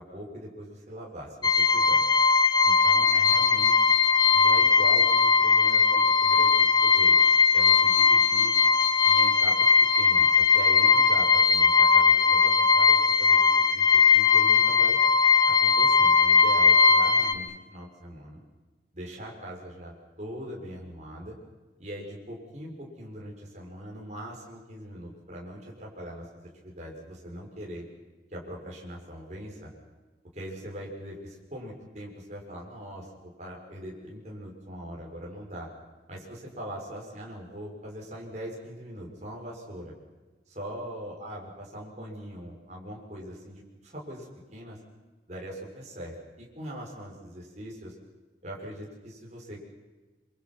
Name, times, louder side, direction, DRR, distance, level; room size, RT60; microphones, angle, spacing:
voice 1, 0.0-2.0 2.6-3.9 4.3-7.2 7.5-8.5 9.0-13.5 13.7-13.9 14.1-15.0 15.4-18.4 18.9-21.3 21.8-27.8 28.3-29.7 30.3-35.7 36.1-39.9 40.5-44.8 45.3-47.9 48.4-49.6, equal, 40° right, -2 dB, 6.7 m, -41 dB
sound 1, 1.4-17.3, left 5 dB, 25° left, 1.0 m, -20 dB
26.5 x 26.0 x 6.3 m, 1.3 s
head